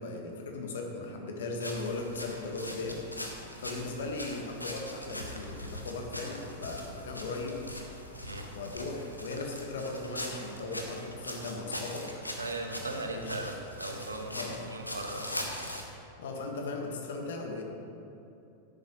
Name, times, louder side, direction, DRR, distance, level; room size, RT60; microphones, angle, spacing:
voice 1, 0.0-3.0 3.6-7.6 8.6-12.1 13.1-13.4 14.3-14.6 16.2-17.6, left 3 dB, 60° left, 1 dB, 1.6 m, -37 dB
sound 1, 1.6-15.8, left 1 dB, 85° left, 1.1 m, -41 dB
voice 2, 12.4-15.5, right 2 dB, 80° right, 4 dB, 1.0 m, -38 dB
13.5 x 10.5 x 3.1 m, 2.8 s
figure-of-eight pair, 90°, 0 cm